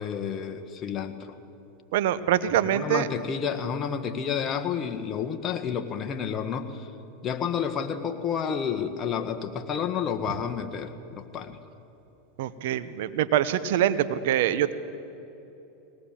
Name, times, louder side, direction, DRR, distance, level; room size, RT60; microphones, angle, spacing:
voice 1, 0.0-1.4 2.7-6.9 7.2-11.6, left 7 dB, 35° left, 6 dB, 1.7 m, -30 dB
voice 2, 1.9-3.1 12.4-14.7, right 11 dB, 70° right, 13 dB, 1.0 m, -24 dB
20.0 x 18.5 x 7.5 m, 3.0 s
hypercardioid pair, 105°, 0 cm